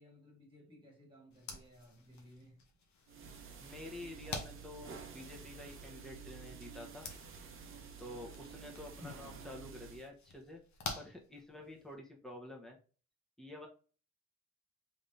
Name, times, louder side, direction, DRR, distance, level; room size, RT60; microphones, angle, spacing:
voice 1, 0.0-2.6 9.0-9.2, left 2 dB, 15° right, 1.9 m, -56 dB
sound 1, 1.3-11.9, left 4 dB, 70° left, 1.0 m, -50 dB
sound 2, 3.1-10.1, right 6 dB, 45° right, 0.8 m, -51 dB
voice 2, 3.6-7.1 8.0-10.6 10.9-12.8 13.4-13.7, left 1 dB, ahead, 1.1 m, -49 dB
3.4 x 3.4 x 2.7 m
cardioid pair, 90°, 30 cm